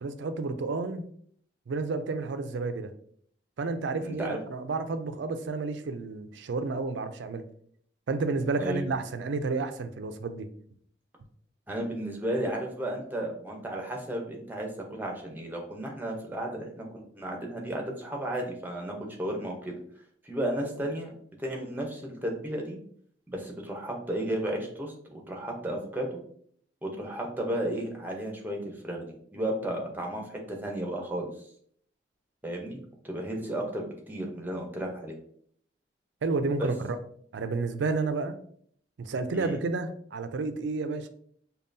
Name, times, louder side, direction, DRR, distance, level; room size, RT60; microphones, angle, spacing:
voice 1, 0.0-1.0 1.7-2.9 3.6-7.4 8.1-10.5 36.2-37.0 37.3-38.4 39.0-41.1, right 3 dB, 75° right, 9 dB, 0.4 m, -31 dB
voice 2, 4.0-4.4 8.6-8.8 11.7-19.7 20.2-21.1 21.4-22.8 23.3-26.2 26.8-28.6 28.8-29.0 29.3-31.3 32.4-35.1 36.6-36.7 39.3-39.6, right 1 dB, 10° right, 1 dB, 0.7 m, -33 dB
5.3 x 2.3 x 2.6 m, 0.62 s
head